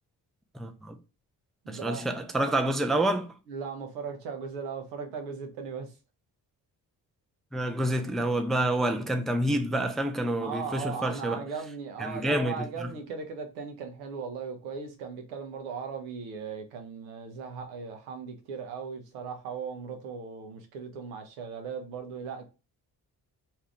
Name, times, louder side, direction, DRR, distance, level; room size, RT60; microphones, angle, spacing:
voice 1, 0.5-1.0 1.7-3.3 7.5-11.4 12.0-12.9, right 1 dB, ahead, 0.4 m, -28 dB
voice 2, 1.6-2.0 3.5-5.9 10.4-22.5, right 5 dB, 85° right, 0.7 m, -38 dB
2.7 x 2.4 x 3.2 m
hypercardioid pair, 40°, 47 cm